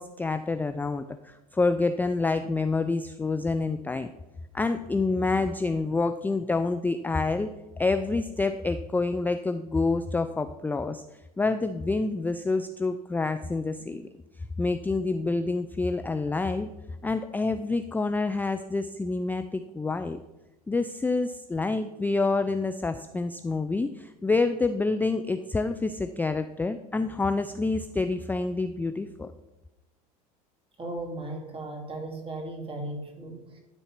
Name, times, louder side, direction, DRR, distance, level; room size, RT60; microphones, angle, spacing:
voice 1, 0.0-4.1 4.5-7.5 7.8-11.0 11.4-14.1 14.6-16.7 17.0-20.2 20.7-29.3, left 3 dB, 10° left, 9 dB, 0.4 m, -27 dB
voice 2, 30.8-33.6, right 2 dB, 30° right, 2 dB, 2.7 m, -36 dB
12.0 x 4.1 x 5.9 m, 1.0 s
hypercardioid pair, 85°, 20 cm